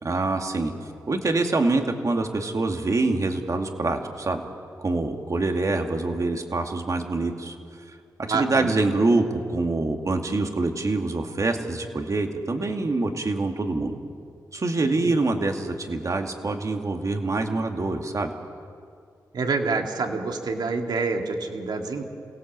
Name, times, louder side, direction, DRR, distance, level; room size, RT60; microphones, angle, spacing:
voice 1, 0.0-0.7 1.1-4.4 4.8-7.6 8.3-13.9 14.5-18.3, right 3 dB, 50° right, 4 dB, 2.4 m, -25 dB
voice 2, 8.3-8.7 14.8-15.1 19.3-22.0, right 4 dB, 75° right, 3 dB, 2.4 m, -27 dB
27.5 x 17.5 x 7.7 m, 2.3 s
cardioid pair, 60°, 7 cm